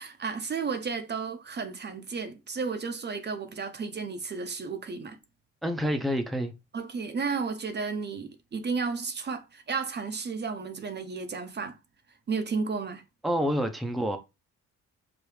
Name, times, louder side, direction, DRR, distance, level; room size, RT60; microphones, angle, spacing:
voice 1, 0.0-5.2 6.7-11.8 12.3-13.0, right 5 dB, 35° right, 0.7 m, -33 dB
voice 2, 5.6-6.5 13.2-14.2, equal, ahead, 0.6 m, -28 dB
4.9 x 2.5 x 3.3 m
cardioid pair, 90°, 30 cm